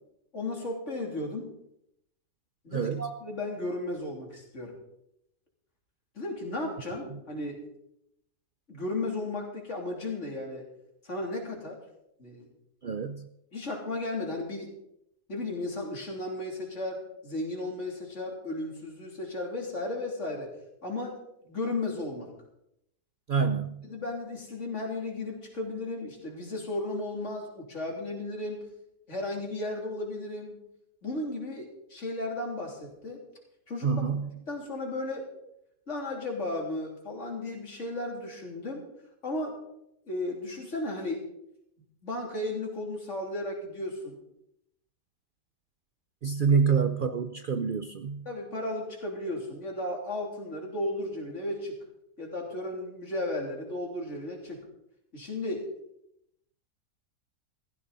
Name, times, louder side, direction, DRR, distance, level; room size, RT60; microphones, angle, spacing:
voice 1, 0.3-1.5 2.6-4.8 6.2-7.7 8.7-10.6 11.0-11.8 12.2-12.5 13.5-14.7 15.3-20.5 20.8-21.2 21.4-22.3 23.8-28.7 29.1-30.6 31.0-33.2 33.7-34.0 34.5-35.3 35.9-38.9 39.2-39.6 40.1-41.2 42.0-44.2 46.5-46.6 48.3-51.8 52.2-54.7 55.1-55.7, left 2 dB, 45° left, 0 dB, 3.5 m, -34 dB
voice 2, 2.7-3.1 12.8-13.3 23.3-23.8 33.8-34.3 46.2-48.3, right 6 dB, 90° right, 9 dB, 0.4 m, -27 dB
16.0 x 15.0 x 4.0 m, 0.79 s
omnidirectional pair, 1.7 m